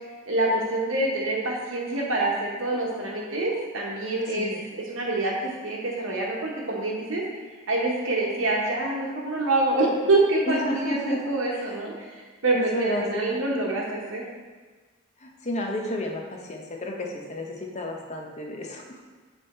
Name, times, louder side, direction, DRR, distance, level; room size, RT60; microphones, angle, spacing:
voice 1, 0.3-12.1 12.4-14.2, right 2 dB, 75° right, -3 dB, 1.0 m, -26 dB
voice 2, 10.5-11.8 12.5-13.2 15.2-19.0, left 1 dB, 35° left, 1 dB, 0.7 m, -31 dB
7.3 x 3.4 x 4.2 m, 1.4 s
head